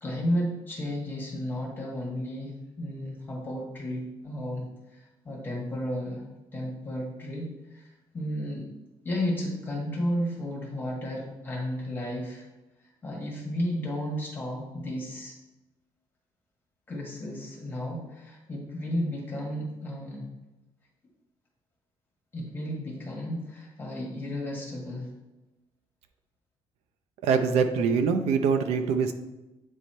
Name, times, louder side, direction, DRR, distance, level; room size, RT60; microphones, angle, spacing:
voice 1, 0.0-6.2 6.5-8.7 9.0-12.4 13.0-15.3 16.9-20.2 22.3-25.1, equal, 20° left, -3 dB, 1.5 m, -33 dB
voice 2, 27.2-29.1, right 6 dB, 90° right, 7 dB, 0.6 m, -24 dB
8.3 x 3.1 x 4.3 m, 1.0 s
cardioid pair, 155°, 10 cm